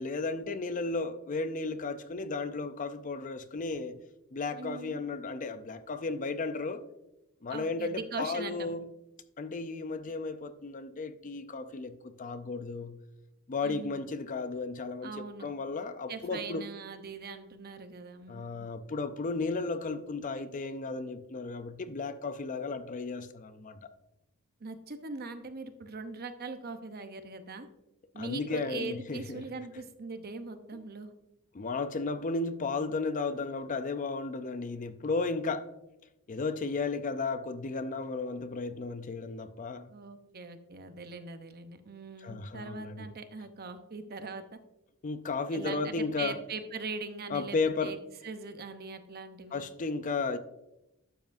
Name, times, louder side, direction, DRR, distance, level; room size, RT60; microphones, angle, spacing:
voice 1, 0.0-4.0 4.3-6.8 7.4-8.9 9.4-13.0 13.5-16.7 18.3-23.8 28.2-29.4 31.5-35.7 36.3-39.9 42.2-43.1 45.0-46.4 47.3-48.0 49.5-50.4, left 3 dB, 35° left, 0.5 m, -34 dB
voice 2, 4.6-5.0 7.5-8.8 13.6-14.0 15.0-15.5 16.1-18.7 24.6-27.7 28.1-31.1 39.9-44.6 45.5-47.6 47.8-48.0 48.2-49.6, right 4 dB, 45° right, 0.8 m, -41 dB
12.0 x 7.6 x 2.6 m
head